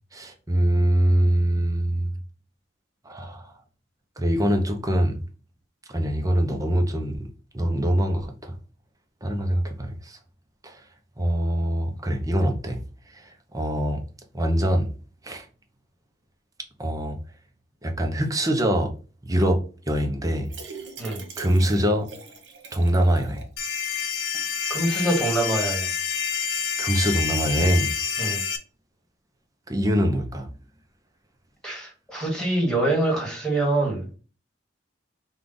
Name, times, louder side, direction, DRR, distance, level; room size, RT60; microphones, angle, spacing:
voice 1, 0.1-2.1 3.0-3.5 4.2-5.1 5.9-7.2 7.5-8.5 9.2-10.2 10.6-10.8 11.2-12.8 13.1-14.0 14.3-14.9 15.2-15.5 16.8-17.2 17.8-18.9 19.2-19.6 19.9-20.5 21.4-22.1 22.7-23.4 26.8-27.9 29.7-30.5, equal, 20° right, 0.7 m, -23 dB
sound 1, 20.5-23.6 23.9-24.0 24.3-24.4, right 4 dB, 75° right, 1.2 m, -41 dB
sound 2, 23.6-28.6, left 7 dB, 90° left, 0.7 m, -28 dB
voice 2, 24.7-25.9 28.2-28.4 31.6-34.2, right 1 dB, 5° left, 1.6 m, -25 dB
5.1 x 2.4 x 3.9 m
head